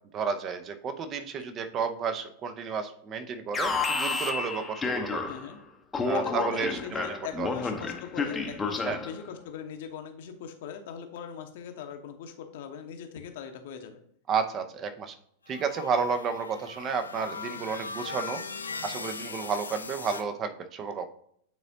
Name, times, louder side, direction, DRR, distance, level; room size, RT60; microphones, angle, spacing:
voice 1, 0.1-5.3 6.0-7.5 8.9-9.0 14.3-15.1 15.5-18.4 18.8-21.1, right 6 dB, 30° right, 9 dB, 0.8 m, -32 dB
Alarm, 3.5-5.5 5.9-9.2, left 4 dB, 15° left, 0.8 m, -30 dB
voice 2, 5.3-5.6 6.1-14.0, left 7 dB, 55° left, 6 dB, 0.9 m, -41 dB
sound 1, 15.5-20.2, left 4 dB, 75° left, 0.5 m, -39 dB
9.2 x 4.1 x 2.7 m, 0.66 s
figure-of-eight pair, 90°, 0 cm